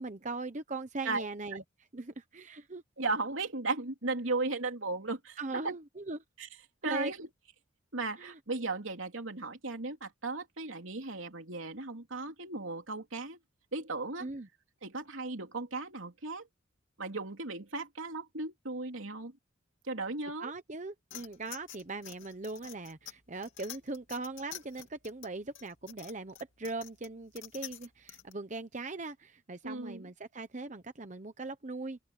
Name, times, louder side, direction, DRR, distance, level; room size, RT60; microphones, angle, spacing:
voice 1, 0.0-1.6 1.9-2.8 5.4-6.2 6.8-7.1 8.2-8.4 14.2-14.5 20.4-32.0, right 3 dB, 40° right, 1.0 m, -40 dB
voice 2, 1.0-1.6 3.0-5.4 5.6-5.7 6.4-6.5 6.8-7.3 7.9-13.4 13.7-14.3 14.8-16.5 17.0-19.3 19.8-20.5 29.6-30.0, right 3 dB, 85° right, 3.2 m, -36 dB
sound 1, 21.1-28.3, left 11 dB, 80° left, 2.4 m, -48 dB
open air
head